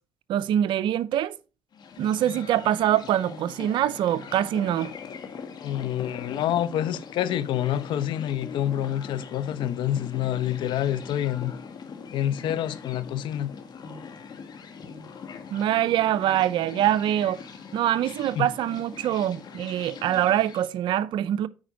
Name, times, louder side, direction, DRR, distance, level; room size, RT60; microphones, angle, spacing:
voice 1, 0.3-1.4 2.0-4.9 15.5-17.4 17.7-21.5, right 11 dB, 75° right, 0.5 m, -24 dB
sound 1, 1.7-20.7, left 5 dB, 60° left, 1.8 m, -41 dB
voice 2, 5.6-11.5 12.1-13.5 18.4-18.5, left 11 dB, 75° left, 0.8 m, -27 dB
8.8 x 5.1 x 5.1 m
supercardioid pair, 70°, 8 cm